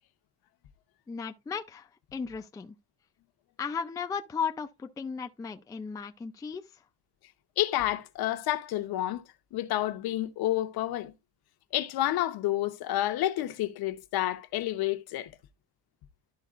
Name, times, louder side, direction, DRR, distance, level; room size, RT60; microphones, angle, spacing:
voice 1, 1.1-2.8 3.6-6.8, left 6 dB, 10° left, 0.4 m, -36 dB
voice 2, 7.6-9.2 9.5-11.1 11.7-15.3, left 14 dB, 65° left, 0.9 m, -29 dB
12.5 x 4.8 x 2.4 m
cardioid pair, 165°, 40 cm